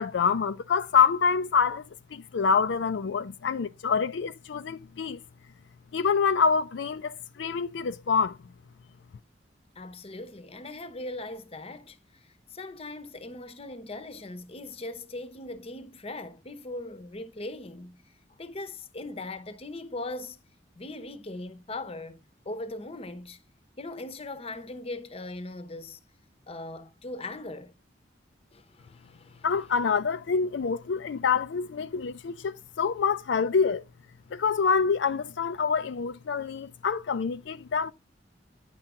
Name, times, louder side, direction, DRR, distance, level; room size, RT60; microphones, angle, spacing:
voice 1, 0.0-1.8 2.1-5.2 5.9-8.4 29.4-33.8 34.3-37.9, left 5 dB, 80° left, 0.4 m, -26 dB
voice 2, 9.8-12.2 12.5-18.0 18.4-20.4 20.7-22.2 22.4-23.4 23.8-26.0 26.5-27.7 28.5-29.5, left 2 dB, 35° left, 0.8 m, -39 dB
10.0 x 6.0 x 3.6 m
head